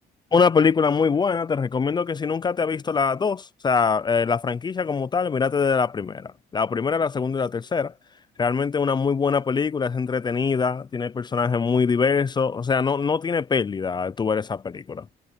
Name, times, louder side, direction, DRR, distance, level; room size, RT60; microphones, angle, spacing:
voice 1, 0.3-7.9 8.4-15.1, left 5 dB, 25° left, 0.6 m, -23 dB
cardioid pair, 110°, 17 cm